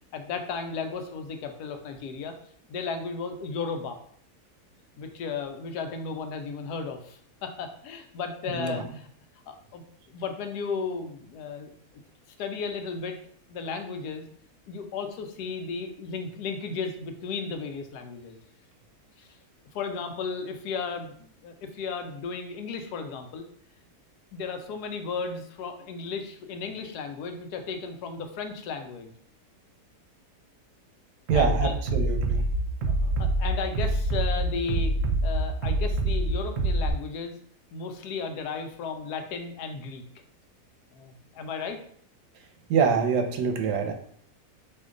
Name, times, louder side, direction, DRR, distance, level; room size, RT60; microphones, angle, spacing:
voice 1, 0.1-2.3 2.7-4.0 5.0-9.1 9.5-11.7 12.4-13.2 13.5-14.2 14.7-18.4 19.2-19.3 19.7-23.4 24.3-29.1 31.3-31.8 32.9-34.9 35.2-37.4 37.7-40.0 40.9-41.8, left 5 dB, 85° left, 6 dB, 1.1 m, -34 dB
Bass drum, 31.3-36.9, right 2 dB, 65° right, 0.8 m, -26 dB
voice 2, 31.3-32.4 42.7-43.9, right 6 dB, 90° right, 5 dB, 1.2 m, -25 dB
4.3 x 2.7 x 3.7 m, 0.62 s
omnidirectional pair, 1.7 m